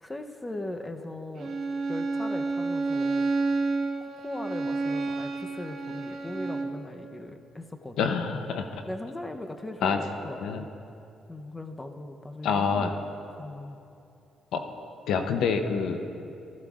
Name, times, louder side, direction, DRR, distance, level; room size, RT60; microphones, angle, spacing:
voice 1, 0.0-1.6 1.9-3.3 4.0-8.2 8.9-10.7 11.3-13.8 16.2-16.3, left 1 dB, 15° left, 5 dB, 0.7 m, -39 dB
Bowed string instrument, 1.4-6.8, right 3 dB, 60° right, 1.1 m, -30 dB
voice 2, 8.0-8.8 9.8-10.0 10.4-10.6 12.4-13.0 14.5-14.6 15.1-16.0, left 6 dB, 80° left, 6 dB, 0.7 m, -27 dB
15.5 x 14.0 x 2.5 m, 2.7 s
cardioid pair, 90°, 0 cm